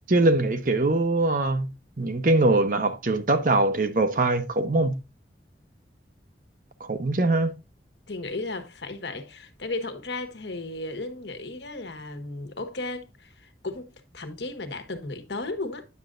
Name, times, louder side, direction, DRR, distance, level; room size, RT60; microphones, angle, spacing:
voice 1, 0.1-5.0 6.8-7.5, right 2 dB, 50° right, 0.8 m, -22 dB
voice 2, 8.1-15.9, left 2 dB, 80° left, 1.3 m, -35 dB
9.5 x 6.6 x 2.5 m
head